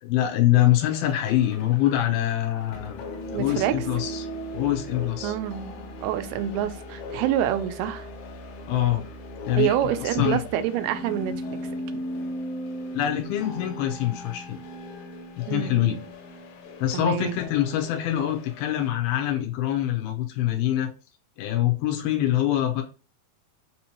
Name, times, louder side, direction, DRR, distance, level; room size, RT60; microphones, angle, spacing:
voice 1, 0.0-3.0 3.3-4.3 4.5-5.3 8.7-9.0 9.5-9.7 10.0-10.4 12.9-14.6 15.4-16.0 16.8-20.9 21.4-22.8, left 12 dB, 85° left, 4 dB, 2.6 m, -24 dB
sound 1, 0.8-18.9, equal, 70° left, 2.1 m, -38 dB
voice 2, 3.3-3.7 5.2-8.1 9.6-11.6 15.5-16.0 16.9-17.4, right 12 dB, 85° right, 9 dB, 2.5 m, -27 dB
6.1 x 2.9 x 2.9 m, 0.35 s
omnidirectional pair, 4.4 m